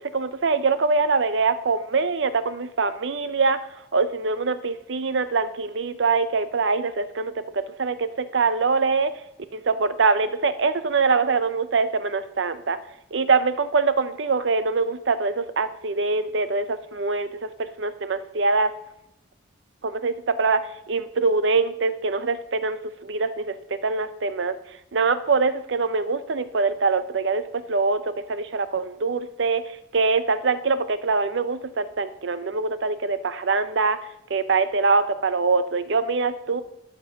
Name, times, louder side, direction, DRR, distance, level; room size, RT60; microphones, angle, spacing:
voice 1, 0.1-3.6 3.9-9.1 9.5-12.8 13.1-17.3 17.6-18.7 19.8-24.5 24.9-27.4 27.7-28.0 28.3-34.0 34.3-36.6, right 4 dB, 70° right, 12 dB, 0.6 m, -23 dB
11.5 x 5.3 x 6.3 m, 0.80 s
head